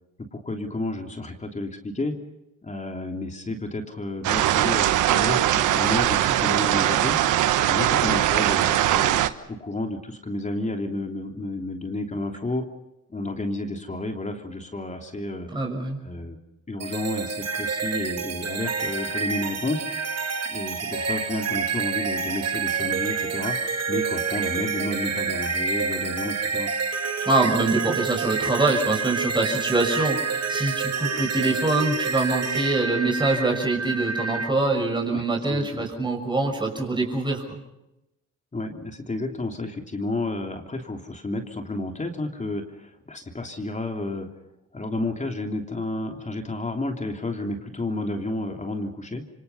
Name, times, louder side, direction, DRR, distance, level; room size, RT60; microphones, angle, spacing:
voice 1, 0.3-2.2 2.6-7.2 7.7-9.2 9.6-12.6 13.1-15.5 16.0-16.4 16.7-19.8 20.5-23.6 23.9-26.7 35.1-35.8 38.5-44.3 44.7-49.3, left 2 dB, 25° left, 3 dB, 3.2 m, -31 dB
sound 1, 4.2-9.3, right 12 dB, 85° right, 1.3 m, -21 dB
voice 2, 15.5-16.0 27.2-37.6, right 2 dB, 15° right, 1 dB, 6.3 m, -24 dB
sound 2, 16.8-34.5, right 5 dB, 55° right, 2.8 m, -28 dB
27.5 x 25.5 x 5.6 m, 0.91 s
cardioid pair, 90°, 30 cm